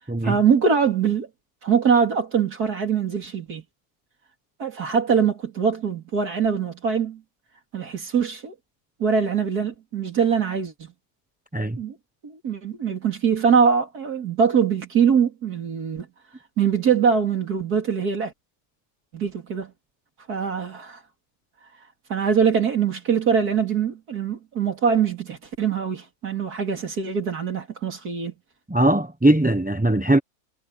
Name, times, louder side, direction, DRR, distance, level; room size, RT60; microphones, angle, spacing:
voice 1, 0.2-1.3 1.6-3.6 4.6-7.2 7.7-8.5 9.0-10.9 11.8-11.9 12.2-16.1 16.6-18.3 19.1-19.7 20.3-21.0 22.1-28.3, right 6 dB, 85° right, 3.3 m, -23 dB
voice 2, 28.7-30.2, right 1 dB, 10° right, 0.5 m, -20 dB
omnidirectional pair, 1.6 m